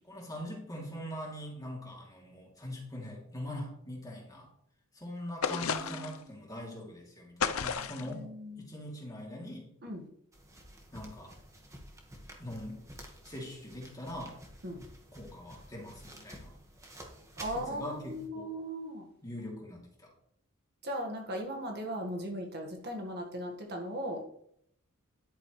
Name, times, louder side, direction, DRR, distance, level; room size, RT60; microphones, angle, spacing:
voice 1, 0.0-4.5 4.9-8.2 8.6-9.7 10.9-11.3 12.4-12.8 13.2-14.4 15.1-16.5 17.5-18.4 19.2-20.1, left 1 dB, 15° left, -2 dB, 2.8 m, -42 dB
sound 1, 5.4-6.2 7.4-8.1, left 6 dB, 70° left, 0.6 m, -32 dB
voice 2, 5.4-6.1 8.0-8.6 9.8-10.1 14.6-14.8 17.4-19.1 20.8-24.2, equal, 50° right, 2 dB, 1.6 m, -38 dB
sound 2, 10.3-18.3, right 1 dB, 15° right, 1.5 m, -51 dB
11.0 x 9.1 x 3.2 m, 0.68 s
head